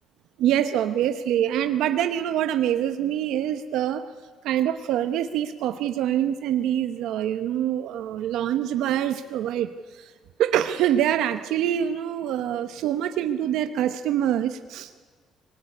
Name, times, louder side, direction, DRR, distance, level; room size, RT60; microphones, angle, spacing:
voice 1, 0.4-4.1 4.4-10.1 10.4-14.9, right 11 dB, 80° right, 9 dB, 1.0 m, -25 dB
24.0 x 20.0 x 9.7 m, 1.5 s
cardioid pair, 175°, 0 cm